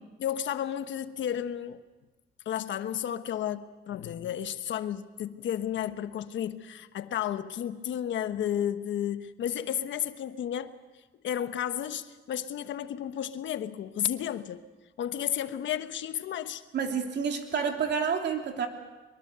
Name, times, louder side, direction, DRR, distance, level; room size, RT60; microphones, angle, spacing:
voice 1, 0.2-1.8 2.4-10.7 11.2-14.6 15.0-16.6, left 10 dB, 70° left, 10 dB, 1.2 m, -32 dB
voice 2, 16.7-18.7, right 6 dB, 60° right, 3 dB, 3.2 m, -29 dB
23.0 x 23.0 x 6.8 m, 1.2 s
cardioid pair, 90°, 20 cm